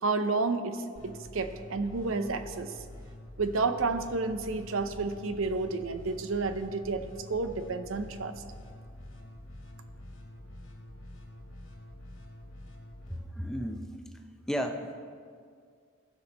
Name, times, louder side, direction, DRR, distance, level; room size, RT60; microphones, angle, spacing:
voice 1, 0.0-2.7 3.4-8.3, right 3 dB, 75° right, 9 dB, 0.6 m, -31 dB
sound 1, 0.9-13.2, left 1 dB, 70° left, 2.1 m, -47 dB
voice 2, 13.1-13.9 14.4-15.1, equal, 5° left, 4 dB, 0.5 m, -34 dB
15.5 x 6.1 x 4.1 m, 2.1 s
head